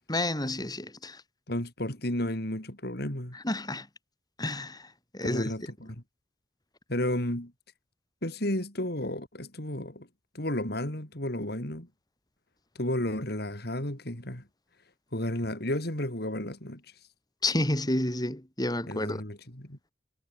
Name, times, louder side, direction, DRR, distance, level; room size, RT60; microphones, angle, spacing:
voice 1, 0.1-1.2 3.3-3.9 4.4-5.5 17.4-19.2, left 1 dB, 20° left, 5.6 m, -30 dB
voice 2, 1.5-3.4 5.2-6.0 6.9-7.5 8.2-10.1 10.3-11.9 12.7-14.4 15.1-16.8 18.9-19.8, left 1 dB, 60° left, 4.9 m, -32 dB
head